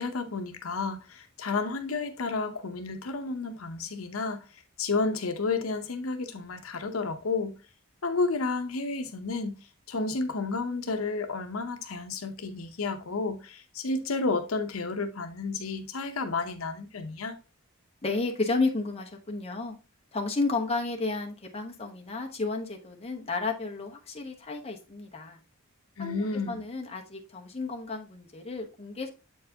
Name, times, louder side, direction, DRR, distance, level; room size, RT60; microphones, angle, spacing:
voice 1, 0.0-4.4 4.8-7.5 8.0-9.6 9.9-17.4 26.0-26.6, left 3 dB, 80° left, 0.8 m, -31 dB
voice 2, 18.0-19.7 20.1-25.4 26.0-26.2 26.5-29.1, left 3 dB, 30° left, 1.0 m, -32 dB
7.6 x 4.6 x 2.8 m
head